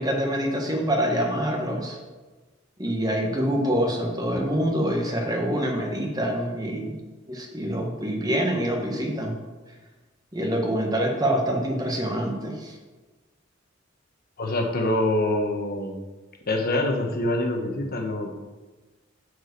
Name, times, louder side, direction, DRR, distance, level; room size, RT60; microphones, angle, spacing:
voice 1, 0.0-2.0 2.8-6.9 7.3-9.4 10.3-12.8, equal, 20° right, 1 dB, 1.4 m, -26 dB
voice 2, 14.4-16.0 16.5-18.4, left 1 dB, 50° left, 3 dB, 1.1 m, -25 dB
9.0 x 4.9 x 6.6 m, 1.2 s
head